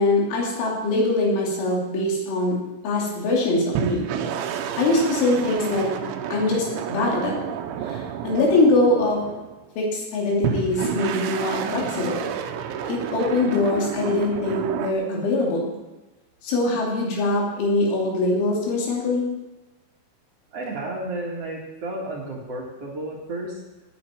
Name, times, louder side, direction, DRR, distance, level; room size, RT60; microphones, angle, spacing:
voice 1, 0.0-2.6 2.8-4.1 4.8-5.9 6.3-7.4 7.8-9.2 9.8-12.3 12.9-15.8 16.4-19.3, left 2 dB, 85° left, -3 dB, 5.5 m, -23 dB
sound 1, 3.7-9.7 10.4-14.9, right 8 dB, 80° right, 3.2 m, -30 dB
voice 2, 20.5-23.6, right 2 dB, 50° right, -2 dB, 2.0 m, -32 dB
17.5 x 9.6 x 4.6 m, 1.1 s
omnidirectional pair, 5.4 m